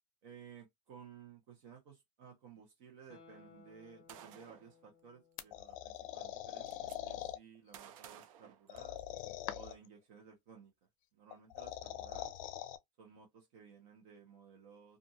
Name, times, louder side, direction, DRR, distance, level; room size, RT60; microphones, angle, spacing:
voice 1, 0.2-9.0 9.5-10.7 11.1-12.3 13.0-15.0, right 6 dB, 65° right, 1.0 m, -57 dB
Guitar, 3.1-6.4 6.7-6.8, left 4 dB, 25° left, 0.6 m, -63 dB
Gunshot gunfire, 4.1-4.7 5.9-6.0 6.3-7.0 7.7-9.2, right 9 dB, 85° right, 0.5 m, -54 dB
sound 1, 5.4-7.4 8.7-9.9 11.3-12.8, left 12 dB, 80° left, 0.4 m, -43 dB
2.6 x 2.5 x 2.7 m
supercardioid pair, 145°, 17 cm